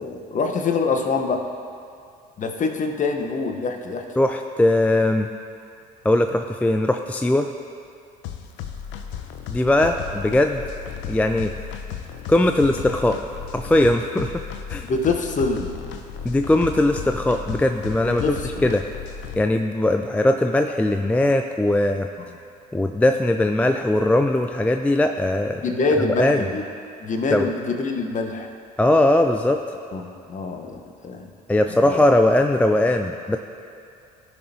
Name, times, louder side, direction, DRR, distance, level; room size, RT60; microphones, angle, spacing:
voice 1, 0.0-1.4 2.4-4.0 14.9-15.7 18.1-18.7 25.6-26.6 27.0-28.5 29.9-31.3 31.7-32.0, left 3 dB, 35° left, 3 dB, 1.1 m, -25 dB
voice 2, 4.2-5.3 6.0-7.5 9.5-10.6 11.1-11.5 12.3-13.2 13.5-14.4 14.7-14.9 16.2-18.4 18.6-18.9 19.4-22.1 22.7-25.6 26.2-26.5 27.3-27.5 28.8-29.6 31.5-33.4, left 1 dB, 5° left, 5 dB, 0.4 m, -20 dB
sound 1, 8.2-19.4, left 8 dB, 60° left, 0.7 m, -35 dB
15.5 x 6.2 x 2.9 m, 2.4 s
hypercardioid pair, 65°, 21 cm